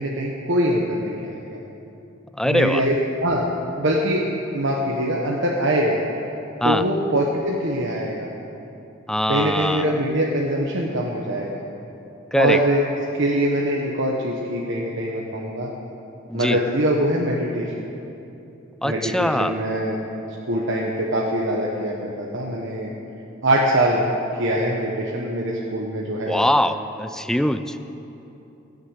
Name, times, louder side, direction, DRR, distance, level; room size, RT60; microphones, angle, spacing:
voice 1, 0.0-1.6 2.4-2.9 3.2-3.5 3.8-4.2 4.5-6.0 6.6-8.3 9.3-11.6 12.4-12.8 13.1-15.7 16.3-17.7 18.8-20.0 20.4-22.9 23.4-24.0 24.4-26.5, right 1 dB, 65° right, -2 dB, 1.1 m, -23 dB
voice 2, 2.3-2.9 6.6-6.8 9.1-10.3 12.3-12.6 16.3-16.6 18.8-19.6 26.3-27.8, left 1 dB, 5° left, 10 dB, 0.4 m, -22 dB
15.5 x 6.6 x 8.2 m, 2.9 s
head